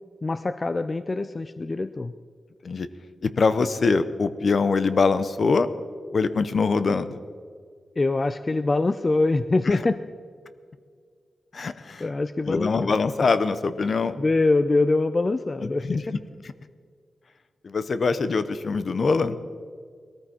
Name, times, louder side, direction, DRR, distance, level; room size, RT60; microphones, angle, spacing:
voice 1, 0.2-2.1 8.0-10.0 12.0-12.9 14.2-15.9, left 2 dB, 30° left, 11 dB, 0.4 m, -24 dB
voice 2, 3.2-5.7 6.1-7.2 9.7-9.8 11.5-12.0 12.5-14.2 15.6-16.0 16.4-16.5 17.6-19.4, left 4 dB, 55° left, 13 dB, 0.8 m, -23 dB
20.0 x 14.0 x 4.3 m, 2.1 s
wide cardioid pair, 135°, 0 cm